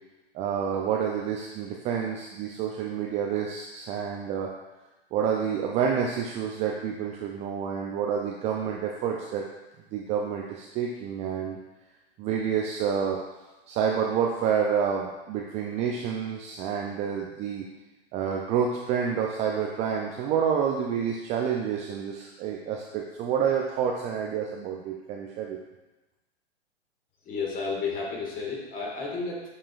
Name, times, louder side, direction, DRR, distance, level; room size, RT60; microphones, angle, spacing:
voice 1, 0.3-4.5 5.1-9.5 9.9-11.6 12.2-13.2 13.7-17.7 18.1-25.6, right 7 dB, 20° right, 0 dB, 0.4 m, -28 dB
voice 2, 27.3-29.4, left 4 dB, 25° left, -2 dB, 1.8 m, -32 dB
7.5 x 5.5 x 2.4 m, 1.1 s
hypercardioid pair, 110°, 32 cm